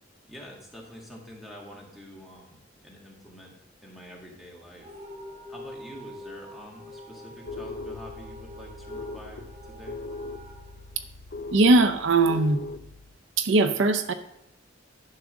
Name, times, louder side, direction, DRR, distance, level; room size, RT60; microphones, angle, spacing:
voice 1, 0.3-3.5 3.8-4.9 5.5-10.0, equal, ahead, -2 dB, 1.7 m, -46 dB
sound 1, 4.8-11.7, left 1 dB, 35° right, 1.5 m, -45 dB
sound 2, 7.5-13.2, left 3 dB, 45° left, 0.4 m, -40 dB
voice 2, 11.5-12.6 13.4-14.1, right 2 dB, 70° right, 10 dB, 0.5 m, -20 dB
10.5 x 3.8 x 6.2 m, 0.86 s
head